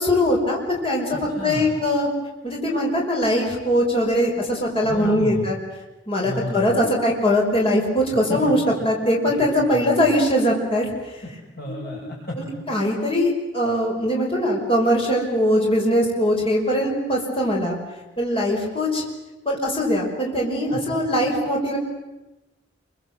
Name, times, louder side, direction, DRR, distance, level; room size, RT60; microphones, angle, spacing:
voice 1, 0.0-2.1 2.4-5.6 6.1-8.6 8.8-10.9 11.7-12.0 12.7-17.8 18.2-19.0 19.5-21.8, equal, 30° left, -1 dB, 5.4 m, -21 dB
voice 2, 1.3-1.7 4.8-5.5 6.2-6.9 8.3-8.4 9.6-10.1 11.2-12.7 20.7-20.8 21.2-21.3, left 1 dB, 55° left, -4 dB, 6.6 m, -33 dB
29.5 x 23.5 x 7.9 m, 1.0 s
head